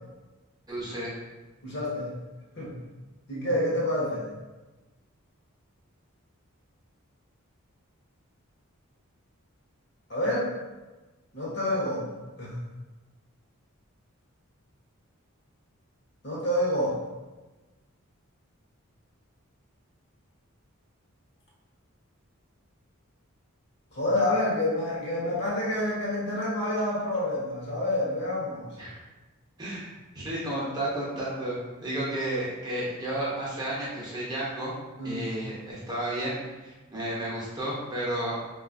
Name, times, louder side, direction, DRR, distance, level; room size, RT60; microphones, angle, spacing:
voice 1, 0.7-1.1 28.8-29.0 29.6-29.9 30.1-34.7 35.0-38.4, right 1 dB, 20° right, -7 dB, 0.7 m, -32 dB
voice 2, 1.6-2.1 2.6-2.7 3.3-4.3 10.1-10.5 11.3-12.1 12.4-12.6 16.2-17.0 23.9-28.7 31.9-32.0 35.0-35.2, left 1 dB, 50° left, -5 dB, 0.9 m, -28 dB
3.5 x 2.3 x 2.5 m, 1.2 s
head